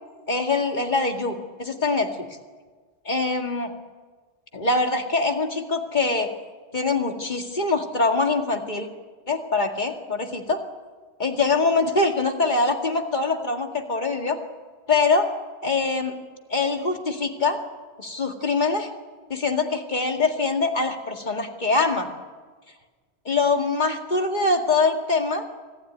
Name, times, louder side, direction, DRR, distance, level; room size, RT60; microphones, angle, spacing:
voice 1, 0.3-2.3 3.1-3.7 4.5-6.3 6.7-8.9 9.3-10.6 11.2-14.4 14.9-15.3 15.6-16.2 16.5-17.6 18.0-18.9 19.3-22.1 23.3-25.4, left 3 dB, 45° left, 3 dB, 2.2 m, -23 dB
25.0 x 15.0 x 9.6 m, 1.4 s
omnidirectional pair, 1.1 m